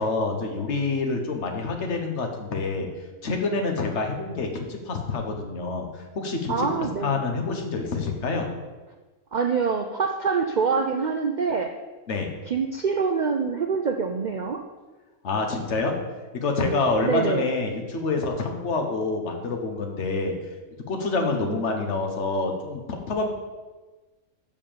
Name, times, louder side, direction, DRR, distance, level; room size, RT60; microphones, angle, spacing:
voice 1, 0.0-2.9 3.2-5.9 6.1-8.5 12.1-12.3 15.2-15.9 16.3-20.3 20.9-23.3, left 3 dB, 55° left, 3 dB, 1.4 m, -27 dB
voice 2, 6.5-7.2 9.3-11.7 12.5-14.6 17.0-17.5 21.1-21.6, right 5 dB, 90° right, 4 dB, 0.4 m, -25 dB
7.1 x 5.5 x 6.8 m, 1.3 s
omnidirectional pair, 1.5 m